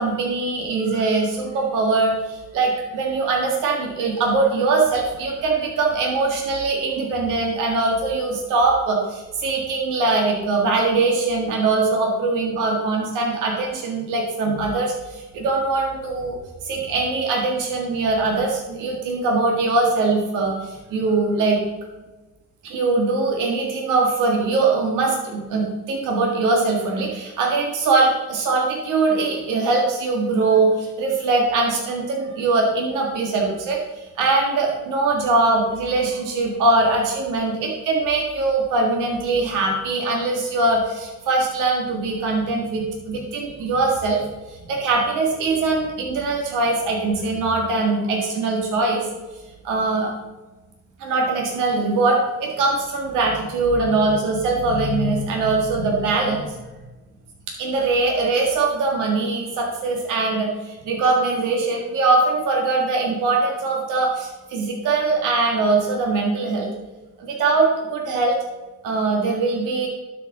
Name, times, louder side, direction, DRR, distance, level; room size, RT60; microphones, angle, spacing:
voice 1, 0.0-16.4 16.6-21.6 22.6-44.2 44.5-49.0 49.6-50.1 51.0-56.5 57.6-66.7 67.2-68.3 68.8-69.9, right 3 dB, 90° right, -1 dB, 1.7 m, -22 dB
12.0 x 5.4 x 3.9 m, 1.1 s
cardioid pair, 90°, 30 cm